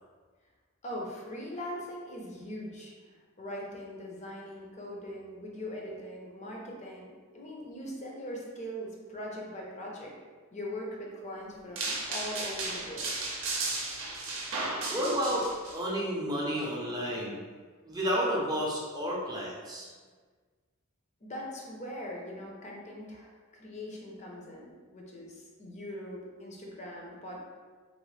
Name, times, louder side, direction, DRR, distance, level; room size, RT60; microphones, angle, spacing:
voice 1, 0.8-2.9 3.4-7.1 7.3-10.1 10.5-13.1 21.2-27.4, equal, 30° left, -2 dB, 0.6 m, -41 dB
sound 1, 11.8-15.7, right 3 dB, 60° right, 0.6 m, -34 dB
voice 2, 14.9-17.4 17.8-19.9, equal, 20° right, -5 dB, 0.6 m, -31 dB
3.9 x 2.0 x 3.2 m, 1.5 s
head